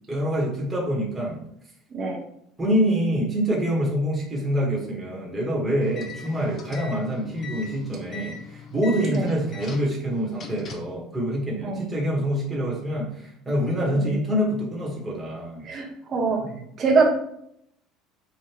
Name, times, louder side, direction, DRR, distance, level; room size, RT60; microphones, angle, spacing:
voice 1, 0.1-1.4 2.6-15.7, equal, 10° right, -4 dB, 1.3 m, -26 dB
sound 1, 5.8-11.0, left 5 dB, 40° left, 0.7 m, -41 dB
voice 2, 15.6-16.4 16.8-17.1, right 4 dB, 35° right, -1 dB, 1.2 m, -23 dB
5.0 x 2.5 x 2.9 m, 0.73 s
cardioid pair, 120°, 0 cm